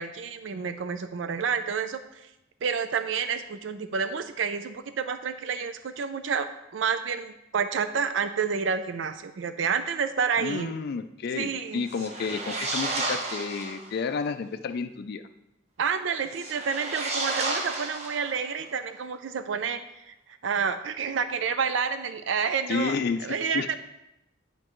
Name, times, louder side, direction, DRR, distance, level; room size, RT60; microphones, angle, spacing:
voice 1, 0.0-2.3 2.6-10.7 11.3-11.9 15.8-20.1 20.4-23.8, right 6 dB, 75° right, 10 dB, 0.5 m, -29 dB
voice 2, 10.4-15.2 22.7-23.7, left 5 dB, 55° left, 9 dB, 0.3 m, -31 dB
sound 1, 11.8-13.9 16.3-18.6, right 2 dB, 35° right, 0.9 m, -32 dB
9.7 x 5.2 x 3.0 m, 0.89 s
head